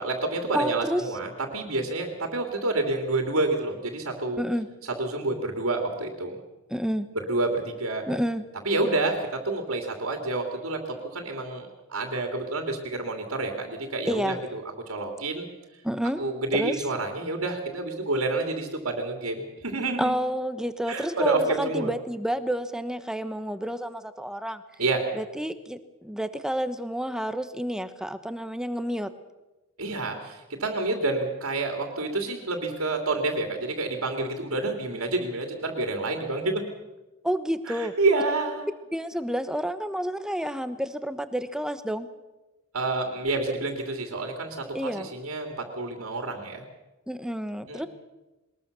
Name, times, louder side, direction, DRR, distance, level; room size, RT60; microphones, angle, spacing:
voice 1, 0.0-4.4 5.0-6.4 7.1-8.0 8.6-10.8 11.1-15.5 16.2-20.2 20.9-21.9 24.8-25.0 29.8-36.6 37.7-38.7 42.7-46.6 47.7-47.9, right 2 dB, 75° right, 3 dB, 3.0 m, -28 dB
voice 2, 0.5-1.0 4.4-4.7 6.7-7.1 8.1-8.5 14.1-14.4 15.8-16.2 16.5-16.7 20.0-24.6 25.1-29.1 37.2-38.0 38.9-42.1 44.7-45.1 47.1-47.9, equal, 5° right, 11 dB, 1.1 m, -29 dB
21.5 x 20.5 x 6.8 m, 1.1 s
head